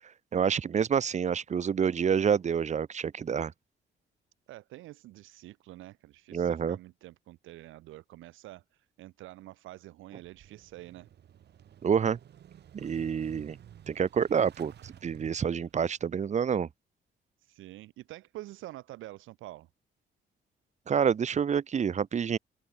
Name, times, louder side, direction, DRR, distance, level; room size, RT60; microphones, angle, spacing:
voice 1, 0.3-3.5 6.3-6.8 11.8-12.2 12.7-13.6 13.9-16.7 20.9-22.4, right 7 dB, 35° right, 0.7 m, -28 dB
voice 2, 4.5-11.1 17.4-19.7, right 16 dB, 85° right, 0.7 m, -47 dB
Motorcycle / Engine starting, 10.2-16.0, right 10 dB, 55° right, 1.1 m, -53 dB
open air
cardioid pair, 90°, 20 cm